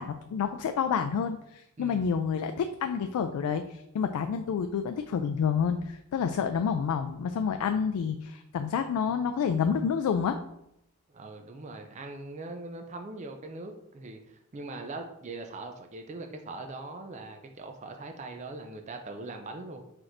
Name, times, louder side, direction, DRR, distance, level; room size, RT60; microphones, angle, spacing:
voice 1, 0.0-10.4, left 6 dB, 90° left, 8 dB, 0.3 m, -29 dB
voice 2, 11.1-19.8, right 2 dB, 30° right, 5 dB, 0.3 m, -41 dB
4.4 x 4.1 x 2.5 m, 0.80 s
head